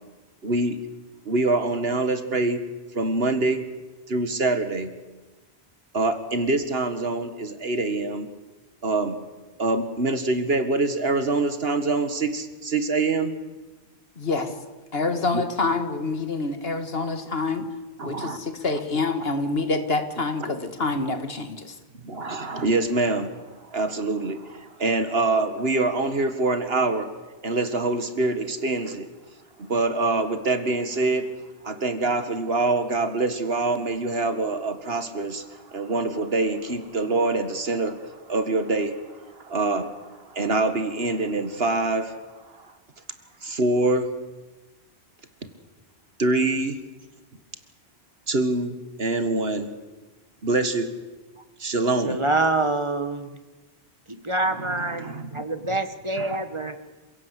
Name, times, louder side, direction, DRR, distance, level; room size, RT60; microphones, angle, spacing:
voice 1, 0.4-0.8 1.3-2.6 2.9-3.6 4.1-4.9 5.9-8.3 8.8-9.2 9.6-13.3 15.3-15.4 18.0-18.4 20.4-20.5 22.0-23.4 23.7-27.1 27.4-29.1 29.6-31.3 31.6-35.4 35.7-42.2 43.4-44.1 46.2-46.8 48.3-49.7 50.4-50.9 51.6-52.2 55.0-55.4 56.2-56.4, right 2 dB, 65° right, 2.0 m, -25 dB
voice 2, 14.2-14.5 14.9-17.6 18.0-21.7, left 3 dB, 65° left, 2.1 m, -27 dB
voice 3, 52.0-53.4 54.1-56.8, right 2 dB, 30° right, 1.5 m, -26 dB
27.5 x 16.5 x 8.3 m
omnidirectional pair, 1.1 m